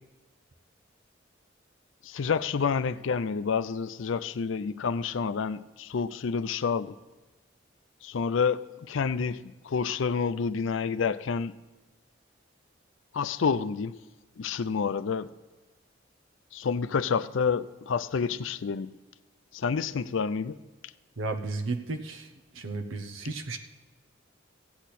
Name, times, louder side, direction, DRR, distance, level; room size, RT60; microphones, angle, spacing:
voice 1, 2.0-6.9 8.0-11.5 13.1-13.9 14.4-15.3 16.5-18.9 19.5-20.6, left 5 dB, 80° left, 0.5 m, -29 dB
voice 2, 21.2-23.6, right 3 dB, 85° right, 0.9 m, -34 dB
16.0 x 8.3 x 4.2 m
head